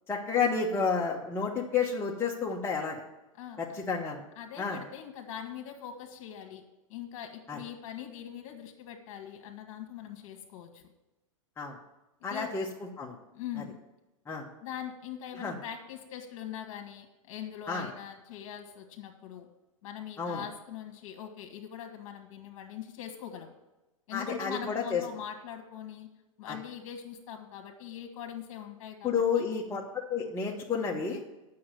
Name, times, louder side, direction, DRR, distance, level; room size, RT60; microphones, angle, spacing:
voice 1, 0.1-3.0 3.6-4.2 4.6-4.8 7.5-7.6 11.6-11.7 12.2-13.2 14.3-14.5 15.3-15.6 17.7-17.9 20.2-20.4 24.1-25.0 26.5-26.6 29.0-29.8 30.1-31.2, left 5 dB, 15° left, -3 dB, 1.2 m, -30 dB
voice 2, 4.3-6.6 6.9-10.8 12.2-12.5 13.3-13.8 14.6-19.5 19.8-23.5 24.1-26.1 26.4-29.4, left 9 dB, 50° left, 4 dB, 1.7 m, -42 dB
8.5 x 6.4 x 7.6 m, 1.0 s
hypercardioid pair, 110°, 18 cm